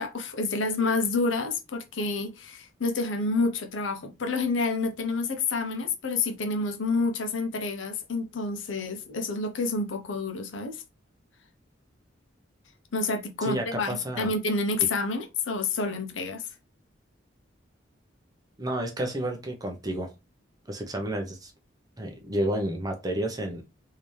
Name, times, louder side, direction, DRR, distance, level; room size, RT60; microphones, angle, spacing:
voice 1, 0.0-10.8 12.9-16.5, left 3 dB, 80° left, 0.7 m, -28 dB
voice 2, 13.4-14.3 18.6-20.1 20.7-21.5 22.0-23.6, right 1 dB, 20° right, 0.7 m, -30 dB
3.4 x 2.7 x 3.2 m
head